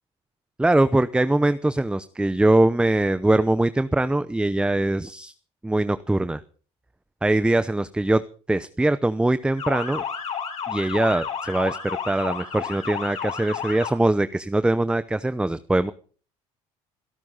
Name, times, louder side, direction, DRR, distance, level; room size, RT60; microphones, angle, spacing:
voice 1, 0.6-5.3 5.6-6.4 7.2-8.2 8.5-10.0 10.7-15.9, right 2 dB, 5° right, 13 dB, 0.8 m, -22 dB
Motor vehicle (road) / Siren, 9.6-13.9, left 7 dB, 55° left, 6.6 m, -31 dB
25.5 x 12.5 x 4.0 m, 0.42 s
supercardioid pair, 90°, 14 cm